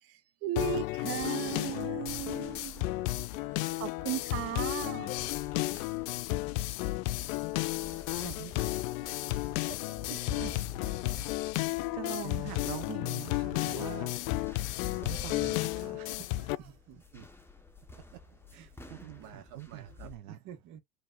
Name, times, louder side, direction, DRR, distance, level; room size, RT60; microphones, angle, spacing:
voice 1, 0.0-5.1, right 14 dB, 35° right, 0.5 m, -37 dB
sound 1, 0.6-16.6, left 18 dB, 60° left, 0.5 m, -33 dB
sound 2, 2.1-20.2, left 2 dB, 5° left, 1.0 m, -51 dB
voice 2, 7.9-10.8 11.1-11.3 11.8-14.6 15.0-16.8 18.5-20.4, right 15 dB, 70° right, 0.8 m, -45 dB
voice 3, 16.6-17.2 18.6-18.7 19.0-20.8, right 8 dB, 50° right, 1.6 m, -50 dB
4.2 x 2.9 x 2.4 m
hypercardioid pair, 95°, 45 cm